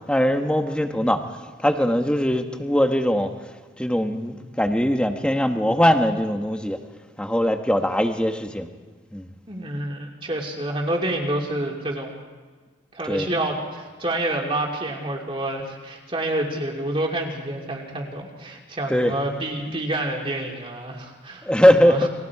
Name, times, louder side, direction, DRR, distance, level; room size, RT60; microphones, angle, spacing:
voice 1, 0.1-1.2 1.6-3.3 3.8-6.8 7.2-8.7 9.1-9.3 13.1-13.3 18.9-19.1 21.4-22.1, equal, 5° left, 5 dB, 1.3 m, -21 dB
voice 2, 9.5-12.2 12.9-21.5 21.8-22.1, right 1 dB, 30° right, 0 dB, 2.8 m, -28 dB
30.0 x 22.5 x 4.8 m, 1.4 s
head